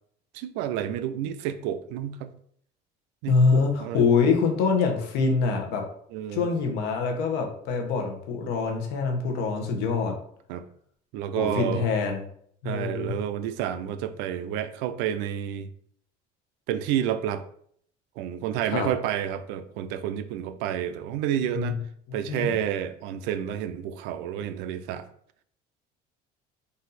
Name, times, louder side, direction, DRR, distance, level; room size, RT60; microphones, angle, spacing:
voice 1, 0.3-2.3 3.2-4.0 6.1-6.5 10.5-10.6 11.1-11.9 12.6-15.7 16.7-17.4 18.2-21.8 22.1-25.1, right 10 dB, 85° right, 11 dB, 0.4 m, -30 dB
voice 2, 3.3-5.8 6.3-10.1 11.3-12.2 12.6-13.1 18.7-18.9 21.5-21.7 22.1-22.6, left 5 dB, 75° left, 3 dB, 1.0 m, -25 dB
4.1 x 2.7 x 4.0 m, 0.64 s
cardioid pair, 155°, 18 cm